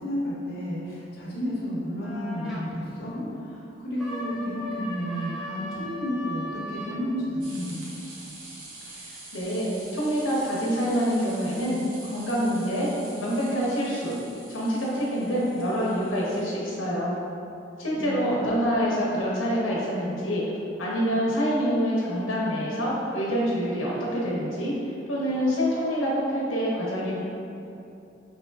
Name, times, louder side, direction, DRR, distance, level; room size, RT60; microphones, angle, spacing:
voice 1, 0.0-7.8 18.0-18.5, equal, 55° left, -6 dB, 1.0 m, -31 dB
sound 1, 2.0-2.6 4.0-7.0, equal, ahead, 0.4 m, -37 dB
sound 2, 7.4-16.4, right 2 dB, 80° right, 0.9 m, -45 dB
voice 2, 8.9-12.9 13.2-14.2 14.5-17.1 17.8-20.4 20.8-24.7 25.1-27.3, equal, 90° left, -5 dB, 1.0 m, -26 dB
4.8 x 3.7 x 2.3 m, 2.7 s
head